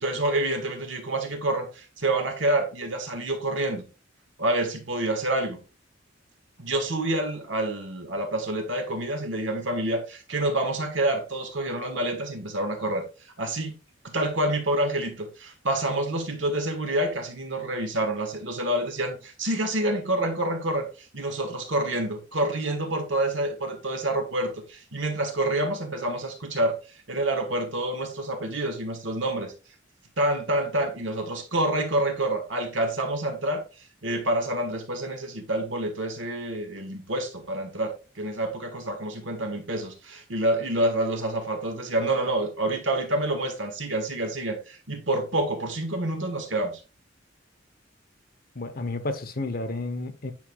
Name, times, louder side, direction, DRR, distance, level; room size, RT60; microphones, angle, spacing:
voice 1, 0.0-3.8 4.4-5.6 6.6-13.1 13.4-13.8 14.0-20.9 21.1-26.8 27.1-29.5 30.2-33.6 34.0-46.8, right 1 dB, 75° right, 1.5 m, -27 dB
voice 2, 48.6-50.3, left 2 dB, 50° left, 0.8 m, -31 dB
9.1 x 4.8 x 2.3 m
head